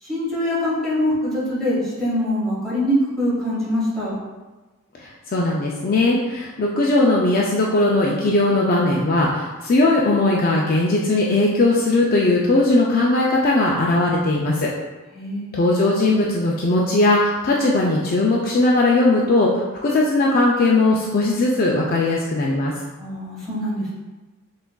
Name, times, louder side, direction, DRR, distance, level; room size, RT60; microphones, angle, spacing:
voice 1, 0.0-4.1 15.1-15.6 23.0-23.9, equal, ahead, -9 dB, 1.5 m, -23 dB
voice 2, 5.0-14.7 15.5-22.7, left 2 dB, 40° left, -3 dB, 0.3 m, -19 dB
5.7 x 2.5 x 2.2 m, 1.2 s
head